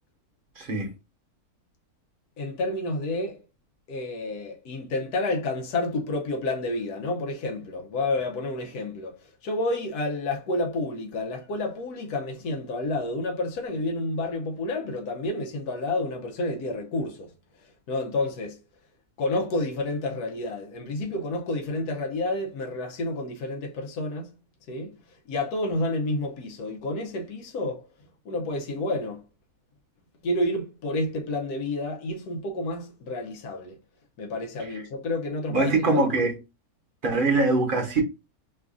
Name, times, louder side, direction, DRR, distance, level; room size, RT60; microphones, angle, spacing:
voice 1, 0.6-0.9 35.5-36.4 37.0-38.0, right 3 dB, 40° right, 0.9 m, -23 dB
voice 2, 2.4-3.4 3.9-17.3 17.9-18.6 19.2-24.3 24.7-25.0 25.3-27.9 28.2-29.2 30.2-33.8 34.2-36.0, left 2 dB, 85° left, 1.2 m, -30 dB
3.2 x 2.4 x 3.5 m
omnidirectional pair, 1.6 m